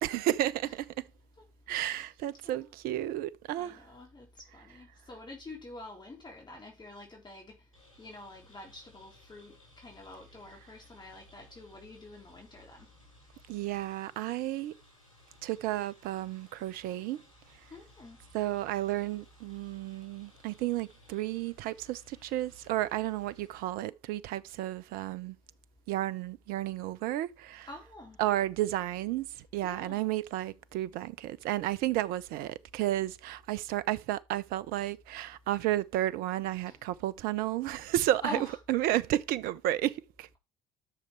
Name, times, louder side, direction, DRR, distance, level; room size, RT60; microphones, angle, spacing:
voice 1, 0.0-1.1 1.7-3.8 13.5-14.7 15.4-17.2 18.3-25.4 25.9-27.7 28.2-29.3 29.5-38.4 38.7-40.3, right 14 dB, 60° right, 0.7 m, -32 dB
voice 2, 1.7-2.1 2.4-2.7 3.6-4.3 4.5-7.6 8.0-12.9 17.7-18.2 27.7-28.2 29.6-30.0 36.7-36.8 38.2-38.5, left 1 dB, 25° left, 3.3 m, -46 dB
sound 1, 7.7-23.7, left 1 dB, 90° left, 7.5 m, -61 dB
13.5 x 6.6 x 3.4 m
hypercardioid pair, 60°, 17 cm